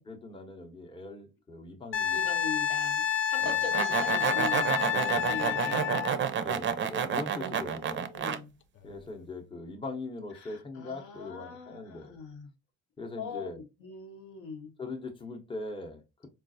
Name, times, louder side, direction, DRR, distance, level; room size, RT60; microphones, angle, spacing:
voice 1, 0.1-2.4 3.4-3.6 4.6-5.6 6.2-8.1 8.8-12.2 13.0-13.6 14.8-16.3, left 2 dB, 15° left, 0.7 m, -41 dB
Wind instrument woodwind instrument, 1.9-6.2 8.9-9.0, left 9 dB, 40° left, 0.4 m, -29 dB
voice 2, 2.1-5.0 5.2-6.1 7.3-8.5 10.3-12.5 13.2-14.7, left 5 dB, 75° left, 1.0 m, -41 dB
sound 1, 3.4-8.4, right 7 dB, 40° right, 0.4 m, -30 dB
3.7 x 2.4 x 2.5 m
cardioid pair, 90°, 30 cm